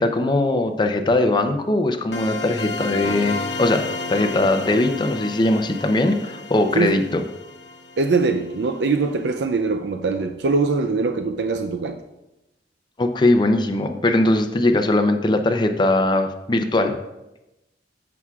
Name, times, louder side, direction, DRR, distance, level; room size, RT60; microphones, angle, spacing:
voice 1, 0.0-7.2 13.0-16.9, left 2 dB, 25° left, 6 dB, 0.6 m, -20 dB
sound 1, 2.1-8.8, left 3 dB, 90° left, 1.1 m, -32 dB
voice 2, 8.0-12.0, right 4 dB, 70° right, 6 dB, 0.4 m, -22 dB
14.0 x 6.1 x 2.4 m, 0.95 s
head